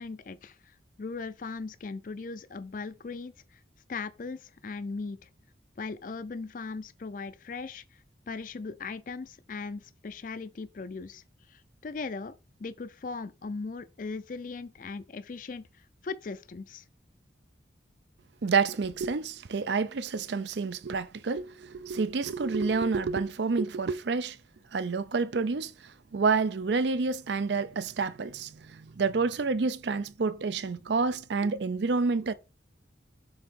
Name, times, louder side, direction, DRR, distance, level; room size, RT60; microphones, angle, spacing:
voice 1, 0.0-3.6 3.9-5.3 5.8-7.8 8.3-11.2 11.5-12.3 12.6-15.7 16.0-16.8, left 4 dB, 45° left, 0.4 m, -38 dB
voice 2, 18.4-24.4 24.7-32.3, right 4 dB, 70° right, 0.5 m, -29 dB
7.1 x 3.6 x 3.7 m
head